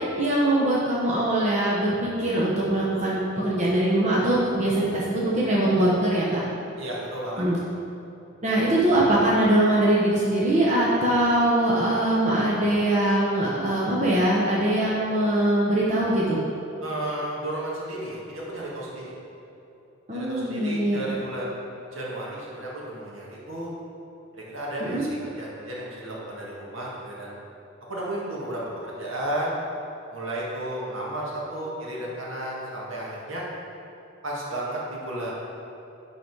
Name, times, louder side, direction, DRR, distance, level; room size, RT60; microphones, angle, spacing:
voice 1, 0.0-6.5 7.4-7.6 8.4-16.4 20.1-21.1 24.8-25.0, right 1 dB, 35° right, -6 dB, 1.0 m, -22 dB
voice 2, 6.8-7.4 16.8-19.1 20.1-23.7 24.3-27.3 27.9-29.6 30.1-33.4 34.2-35.3, right 1 dB, 75° right, -5 dB, 1.8 m, -33 dB
10.5 x 4.0 x 4.7 m, 3.0 s
head